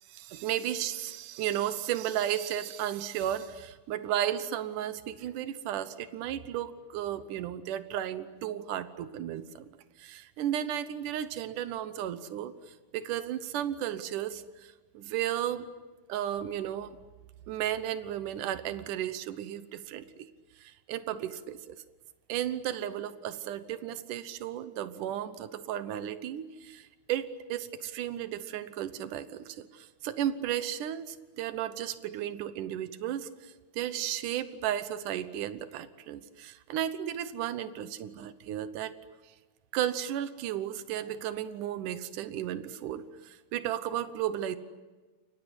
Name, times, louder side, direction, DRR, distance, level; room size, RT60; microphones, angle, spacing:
voice 1, 0.1-9.7 10.0-15.7 16.1-17.0 17.5-20.3 20.6-21.8 22.3-39.0 39.2-39.3 39.7-44.6, right 11 dB, 85° right, 12 dB, 1.8 m, -34 dB
30.0 x 24.5 x 8.1 m, 1.3 s
omnidirectional pair, 5.1 m